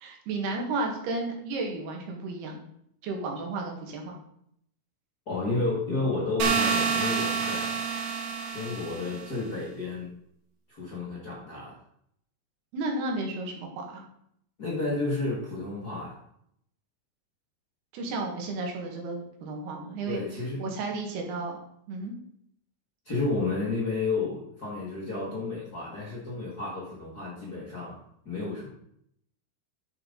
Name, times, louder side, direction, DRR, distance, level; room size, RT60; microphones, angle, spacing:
voice 1, 0.0-2.6 3.0-4.2 12.7-14.0 17.9-20.2 20.6-21.6 21.9-22.1, right 3 dB, 80° right, 1 dB, 3.8 m, -33 dB
voice 2, 5.3-7.8 8.5-10.1 10.7-11.7 14.6-16.2 20.0-20.6 23.1-28.0 28.3-28.7, left 3 dB, 35° left, -5 dB, 1.7 m, -31 dB
sound 1, 6.4-9.3, right 5 dB, 60° right, 2.4 m, -28 dB
10.5 x 7.8 x 4.0 m, 0.70 s
omnidirectional pair, 4.6 m